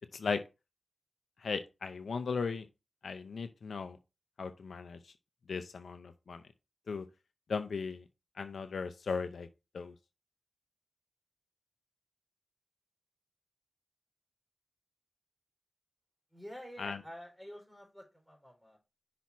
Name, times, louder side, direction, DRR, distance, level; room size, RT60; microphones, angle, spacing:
voice 1, 1.4-2.7 3.0-4.0 4.4-5.0 5.5-6.4 6.9-7.1 7.5-8.0 8.4-9.5 9.7-9.9 16.8-17.0, left 5 dB, 80° left, 0.6 m, -37 dB
voice 2, 16.3-18.8, equal, 5° right, 4.2 m, -49 dB
5.9 x 4.2 x 4.7 m
cardioid pair, 45°, 0 cm